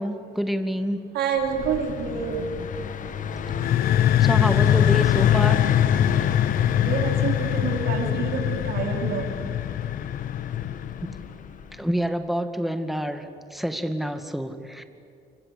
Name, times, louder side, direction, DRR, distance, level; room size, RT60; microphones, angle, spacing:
voice 1, 0.0-1.0 4.2-5.7 11.7-14.8, equal, ahead, 8 dB, 2.1 m, -28 dB
voice 2, 1.1-2.5 6.8-9.3, right 6 dB, 70° right, 3 dB, 4.2 m, -27 dB
Car passing by, 1.4-12.0, left 7 dB, 50° left, 1.6 m, -31 dB
sound 1, 3.5-11.1, left 12 dB, 70° left, 0.8 m, -23 dB
29.0 x 24.5 x 8.3 m, 2.5 s
cardioid pair, 110°, 17 cm